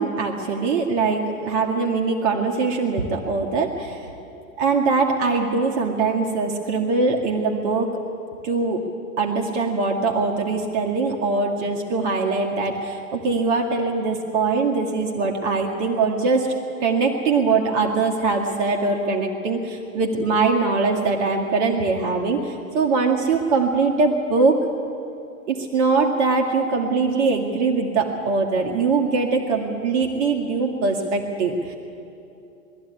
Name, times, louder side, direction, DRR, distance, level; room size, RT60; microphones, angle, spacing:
voice 1, 0.0-4.0 4.6-8.0 8.4-8.8 9.2-16.5 16.8-24.6 25.5-31.7, right 4 dB, 55° right, 1 dB, 2.2 m, -22 dB
20.5 x 14.0 x 9.8 m, 2.7 s
hypercardioid pair, 110°, 43 cm